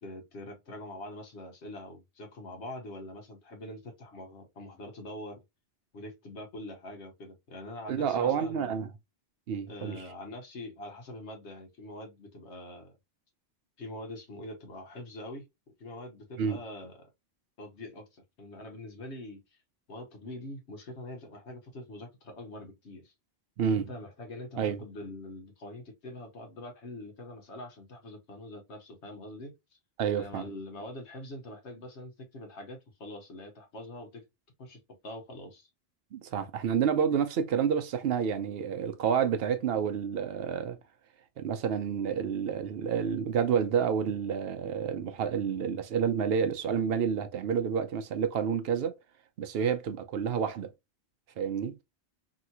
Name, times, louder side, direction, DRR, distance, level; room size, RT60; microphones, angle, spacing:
voice 1, 0.0-5.4 5.9-8.7 9.7-12.9 13.8-15.5 15.8-17.1 17.6-19.4 19.9-23.1 23.7-29.5 30.1-34.3 34.6-35.7, left 1 dB, 75° left, 1.4 m, -44 dB
voice 2, 7.9-8.9 9.5-10.0 16.4-16.6 23.6-23.9 24.6-24.8 30.0-30.4 36.1-40.8 41.4-48.9 49.4-50.7 51.4-51.7, right 7 dB, 65° right, 0.8 m, -29 dB
3.0 x 2.9 x 2.7 m
omnidirectional pair, 1.2 m